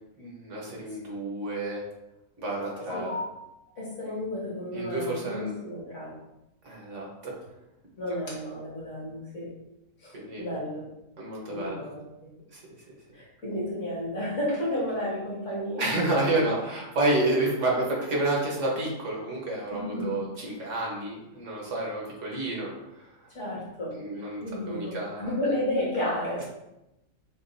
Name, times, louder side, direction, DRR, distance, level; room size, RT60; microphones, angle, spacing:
voice 1, 0.2-1.8 2.4-3.2 4.7-5.5 6.6-7.3 10.1-10.5 11.2-11.8 12.5-12.6 12.9-13.0 15.8-22.7 23.0-23.1 24.0-25.3, right 2 dB, 60° right, -2 dB, 1.4 m, -30 dB
voice 2, 2.7-3.4 3.8-6.1 8.0-9.5 10.0-10.8 11.5-12.0 13.1-15.9 19.7-20.2 23.3-26.4, left 1 dB, 60° left, -7 dB, 2.1 m, -32 dB
6.8 x 2.5 x 2.6 m, 0.91 s
omnidirectional pair, 1.5 m